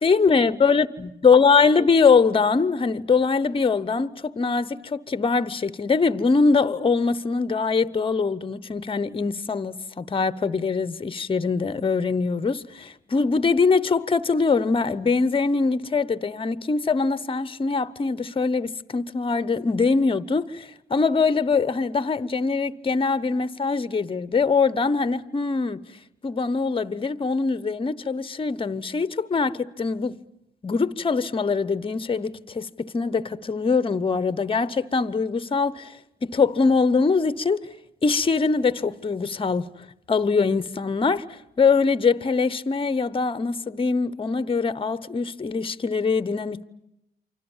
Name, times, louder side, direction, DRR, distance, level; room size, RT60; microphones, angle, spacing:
voice 1, 0.0-25.8 26.2-30.2 30.6-35.9 36.2-37.7 38.0-39.7 40.1-46.7, left 4 dB, 25° left, 1.0 m, -23 dB
28.5 x 25.0 x 7.3 m
cardioid pair, 90°, 20 cm